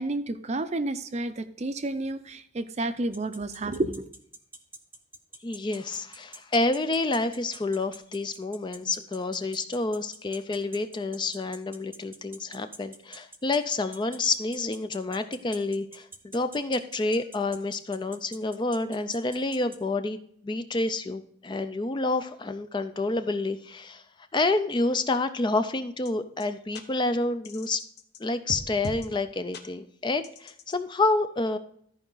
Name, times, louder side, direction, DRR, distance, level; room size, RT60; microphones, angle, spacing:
voice 1, 0.0-4.1, right 2 dB, 35° right, 11 dB, 0.5 m, -30 dB
sound 1, 3.1-19.8, right 2 dB, 10° right, 0.8 m, -45 dB
voice 2, 5.4-16.1 16.3-24.0 24.3-27.8 28.2-31.6, left 2 dB, 25° left, 10 dB, 0.4 m, -28 dB
sound 2, 26.1-26.2 26.4-26.5 26.7-26.8 27.4-28.2 28.5-29.1 29.5-29.6 30.2-30.8, left 2 dB, 50° left, 0.9 m, -38 dB
13.5 x 4.9 x 3.8 m, 0.65 s
head